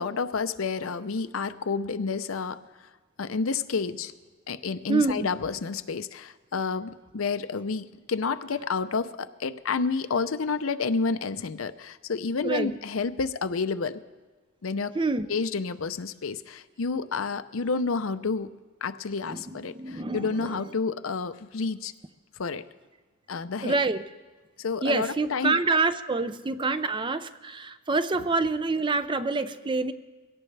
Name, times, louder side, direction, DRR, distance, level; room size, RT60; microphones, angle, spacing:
voice 1, 0.0-2.6 3.2-4.1 4.5-14.0 14.6-14.9 15.3-18.5 18.8-21.9 22.4-22.6 23.3-23.8 24.6-25.6, left 4 dB, 80° left, 11 dB, 0.6 m, -30 dB
voice 2, 4.9-5.3 12.4-12.7 14.9-15.3 19.3-20.7 23.6-24.0 24.8-29.9, right 3 dB, 25° right, 12 dB, 0.5 m, -27 dB
22.5 x 17.0 x 3.4 m, 1.3 s
head